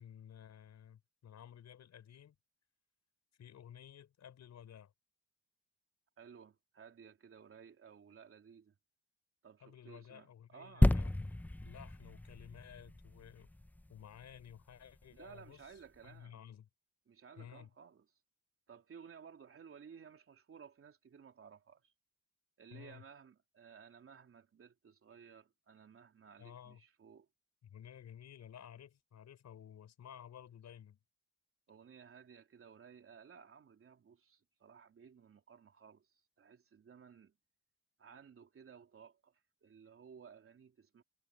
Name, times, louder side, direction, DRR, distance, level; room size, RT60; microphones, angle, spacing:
voice 1, 0.0-2.3 3.4-4.9 9.6-13.5 13.9-15.7 16.0-16.7 17.4-17.7 22.7-23.0 26.4-26.8 27.6-31.0, left 9 dB, 65° left, 6.0 m, -54 dB
voice 2, 6.2-8.8 9.4-10.9 15.1-16.4 17.1-18.1 18.7-21.9 22.6-27.3 31.7-37.4 38.0-41.0, right 7 dB, 45° right, 3.5 m, -57 dB
sound 1, 10.8-14.4 15.0-15.1, left 1 dB, 5° left, 0.7 m, -32 dB
cardioid pair, 90°, 30 cm